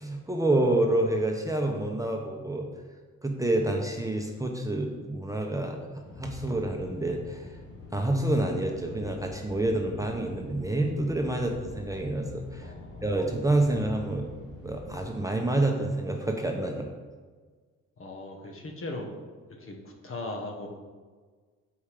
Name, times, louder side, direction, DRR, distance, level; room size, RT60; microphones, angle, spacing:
voice 1, 0.0-2.7 3.2-5.8 6.2-7.6 7.9-12.7 13.0-14.3 14.6-16.9, right 1 dB, 10° right, 2 dB, 0.9 m, -28 dB
sound 1, 6.0-15.0, left 2 dB, 85° left, 2.1 m, -45 dB
voice 2, 12.6-13.0 18.0-19.1 19.5-20.7, left 2 dB, 45° left, 2 dB, 1.4 m, -38 dB
7.2 x 5.3 x 5.0 m, 1.5 s
cardioid pair, 90°, 30 cm